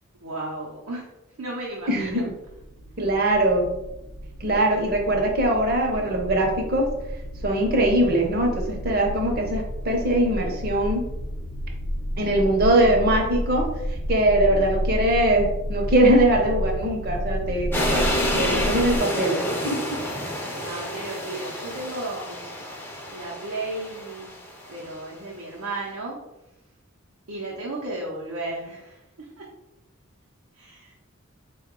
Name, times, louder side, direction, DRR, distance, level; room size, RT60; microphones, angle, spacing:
voice 1, 0.2-1.1 1.4-2.3 20.6-22.5 23.1-24.4 24.7-26.2 27.3-29.5 30.5-30.9, right 2 dB, 80° right, -4 dB, 0.7 m, -34 dB
voice 2, 1.9-2.3 3.0-3.7 4.4-6.9 7.4-11.1 12.2-13.7 14.1-18.0 18.4-19.4 19.6-19.8, right 1 dB, 45° right, 2 dB, 0.7 m, -21 dB
sound 1, 2.0-19.0, equal, 55° left, 0.8 m, -31 dB
sound 2, 17.7-24.8, left 1 dB, 10° left, 0.5 m, -29 dB
3.8 x 2.3 x 3.7 m, 0.92 s
head